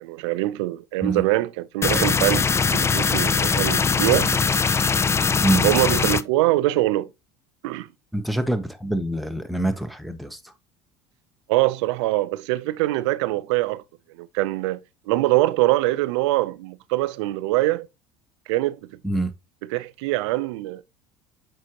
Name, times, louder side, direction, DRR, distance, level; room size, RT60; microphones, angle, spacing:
voice 1, 0.0-4.4 5.6-7.1 7.6-7.9 11.5-13.8 14.2-17.9 18.5-18.8 19.7-20.8, right 17 dB, 80° right, 0.5 m, -23 dB
sound 1, 1.8-6.2, left 5 dB, 20° left, 0.3 m, -21 dB
voice 2, 8.1-10.5 19.0-19.3, right 1 dB, ahead, 0.9 m, -25 dB
7.3 x 4.8 x 2.9 m
supercardioid pair, 85°, 14 cm